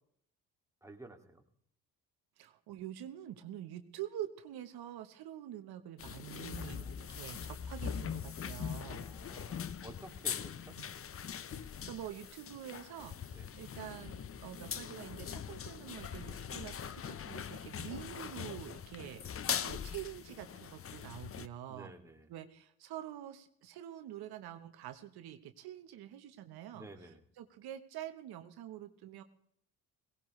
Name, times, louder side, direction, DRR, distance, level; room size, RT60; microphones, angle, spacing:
voice 1, 0.8-1.4 6.6-7.5 9.0-10.8 13.3-13.5 21.7-22.3 26.7-27.2, right 2 dB, 5° right, 2 dB, 2.4 m, -53 dB
voice 2, 2.4-6.9 7.1-9.1 10.8-10.9 11.6-19.2 19.6-21.9 22.3-29.2, right 12 dB, 75° right, 8 dB, 1.1 m, -46 dB
sound 1, 6.0-21.5, left 8 dB, 35° left, 0.7 m, -42 dB
18.0 x 17.5 x 3.2 m, 0.69 s
supercardioid pair, 75°, 38 cm